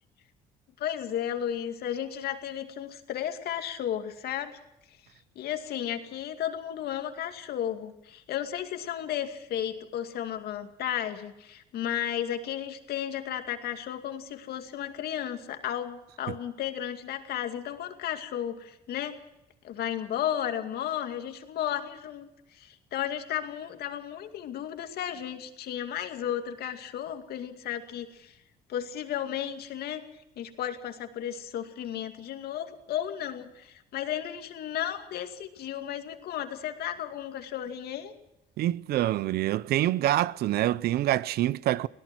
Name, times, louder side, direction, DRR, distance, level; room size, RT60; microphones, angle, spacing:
voice 1, 0.8-4.6 4.9-5.0 5.4-19.2 19.6-28.4 28.7-30.0 30.4-38.1, left 10 dB, 70° left, 2.4 m, -34 dB
voice 2, 38.6-41.9, right 14 dB, 70° right, 0.7 m, -26 dB
25.5 x 17.5 x 6.1 m
cardioid pair, 110°, 17 cm